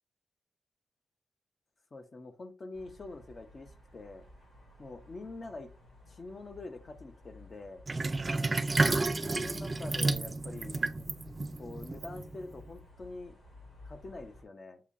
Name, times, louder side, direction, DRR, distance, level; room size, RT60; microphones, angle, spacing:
voice 1, 1.9-4.2 4.8-5.7 6.1-7.8 9.2-11.1 11.6-13.3 13.8-14.8, left 3 dB, 40° left, 7 dB, 0.7 m, -45 dB
sound 1, 2.7-14.4, left 1 dB, 85° left, 2.3 m, -55 dB
Sink (filling or washing), 7.9-12.6, right 3 dB, 30° right, 0.4 m, -31 dB
6.8 x 2.7 x 2.6 m, 0.33 s
wide cardioid pair, 105°, 0 cm